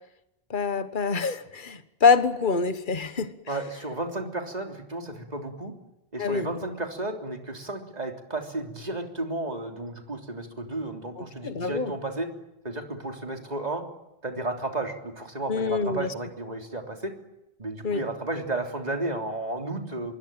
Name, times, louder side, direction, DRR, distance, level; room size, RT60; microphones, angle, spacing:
voice 1, 0.5-3.3 6.2-6.5 11.4-11.9 15.5-16.1 17.8-18.0, left 5 dB, 55° left, 11 dB, 1.6 m, -25 dB
voice 2, 3.5-5.7 6.1-12.3 12.6-13.8 14.2-17.1 17.6-20.1, right 2 dB, 40° right, 4 dB, 3.6 m, -33 dB
26.0 x 23.0 x 9.0 m, 0.90 s
omnidirectional pair, 1.0 m